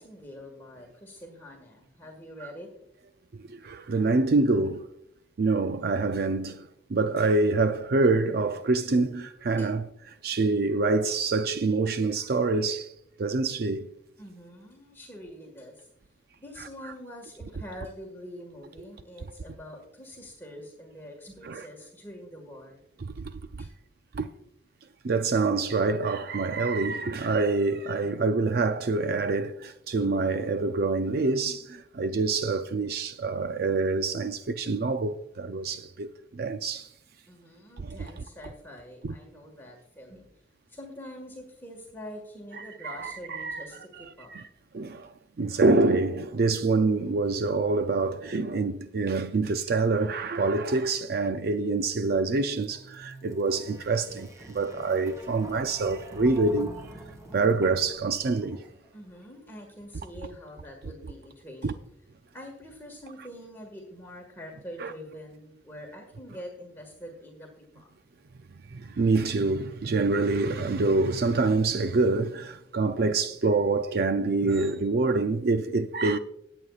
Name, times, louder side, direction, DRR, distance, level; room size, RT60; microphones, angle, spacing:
voice 1, 0.0-2.7 9.6-9.7 14.2-15.9 16.4-22.8 23.6-23.7 37.3-40.3 40.7-44.5 58.9-61.8 62.3-67.9, equal, 10° left, 1.7 m, -45 dB
voice 2, 3.5-4.8 5.4-9.9 10.2-12.9 13.2-13.9 21.4-21.6 23.0-23.2 24.1-24.3 25.0-36.1 36.3-36.9 37.8-38.1 39.0-39.1 42.8-43.7 44.3-44.4 44.7-56.7 57.3-58.6 61.6-61.7 64.8-64.9 68.7-76.2, right 3 dB, 55° right, 0.5 m, -26 dB
sound 1, 52.2-59.0, right 1 dB, 20° right, 1.8 m, -46 dB
20.0 x 8.1 x 2.4 m
head